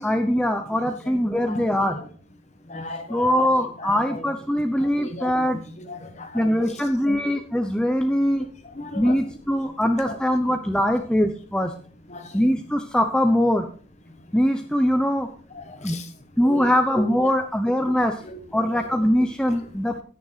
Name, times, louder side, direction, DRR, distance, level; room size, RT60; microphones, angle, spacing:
voice 1, 0.0-2.0 3.1-5.6 6.3-8.5 9.0-11.7 12.3-13.7 14.3-15.3 15.8-16.0 16.4-18.1 18.5-19.9, equal, 5° left, 5 dB, 0.7 m, -22 dB
voice 2, 1.4-2.0 2.7-3.4 3.8-4.2 4.8-5.5 5.8-6.8 7.1-7.3 8.6-9.2 10.0-10.2 12.1-12.4 15.5-16.1 16.4-16.7 17.8-17.9 18.2-18.6, left 1 dB, 35° left, 8 dB, 1.4 m, -37 dB
16.0 x 6.7 x 4.1 m, 0.41 s
head